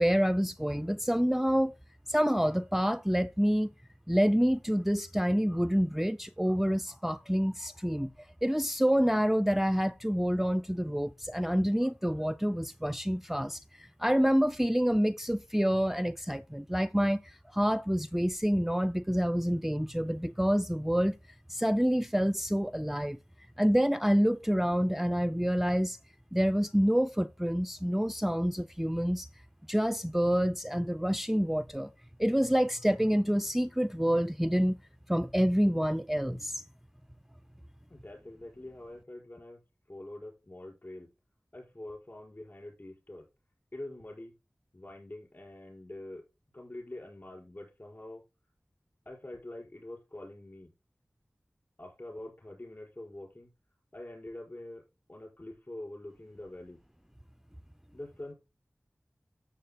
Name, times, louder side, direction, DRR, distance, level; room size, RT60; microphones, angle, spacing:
voice 1, 0.0-1.7 2.1-3.7 4.1-8.1 8.4-21.1 21.5-23.2 23.6-26.0 26.3-29.3 29.7-31.9 32.2-34.8 35.1-36.6, equal, 5° right, 0.4 m, -27 dB
voice 2, 37.9-39.6 39.9-41.1 41.5-43.3 43.7-44.3 44.7-46.2 46.5-48.2 49.0-50.7 51.8-53.5 53.9-56.8 57.9-58.3, left 1 dB, 40° left, 4.8 m, -45 dB
13.5 x 7.0 x 2.2 m
wide cardioid pair, 45°, 5 cm